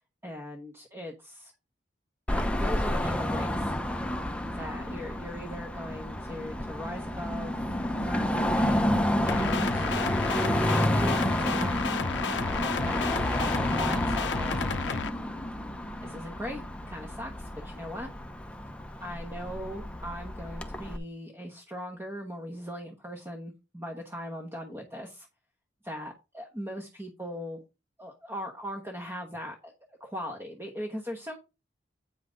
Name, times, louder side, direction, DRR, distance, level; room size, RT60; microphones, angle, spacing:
voice 1, 0.2-1.5 2.3-3.7 4.5-8.9 9.2-9.8 10.9-11.8 12.5-13.0 13.7-15.1 16.0-18.1 19.0-25.3 25.8-27.6 28.0-29.7 30.0-31.4, equal, 15° right, 1 dB, 1.2 m, -39 dB
Car passing by / Traffic noise roadway noise / Engine, 2.3-21.0, left 1 dB, 5° left, 0.8 m, -30 dB
sound 1, 9.3-15.1, left 5 dB, 80° left, 0.6 m, -32 dB
8.7 x 5.7 x 3.9 m, 0.27 s
head